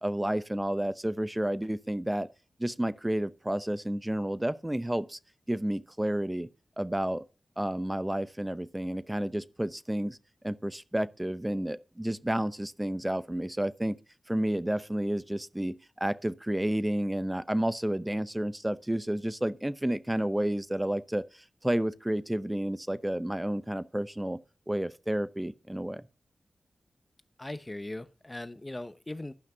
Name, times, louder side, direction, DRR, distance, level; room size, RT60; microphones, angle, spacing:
voice 1, 0.0-2.3 2.6-5.2 5.5-6.5 6.8-7.2 7.6-10.2 10.4-14.0 14.3-24.4 24.7-26.0, right 1 dB, 10° right, 0.7 m, -31 dB
voice 2, 27.4-29.3, left 1 dB, 20° left, 0.8 m, -39 dB
12.0 x 5.8 x 5.5 m
cardioid pair, 65°, 0 cm